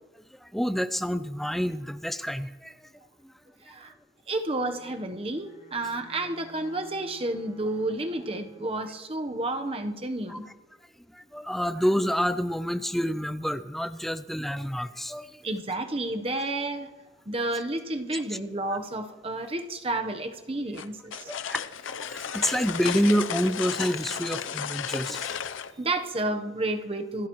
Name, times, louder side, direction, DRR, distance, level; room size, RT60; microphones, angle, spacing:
voice 1, 0.5-2.7 10.3-10.4 11.1-15.3 21.3-25.4, equal, ahead, 12 dB, 0.5 m, -28 dB
voice 2, 4.3-10.5 15.4-16.9 17.3-21.3 25.8-27.3, right 2 dB, 30° right, 6 dB, 0.9 m, -31 dB
Bowed string instrument, 4.4-9.0, left 1 dB, 45° left, 3.3 m, -54 dB
sound 1, 20.8-25.7, left 8 dB, 80° left, 0.6 m, -34 dB
26.5 x 13.0 x 3.1 m, 1.3 s
head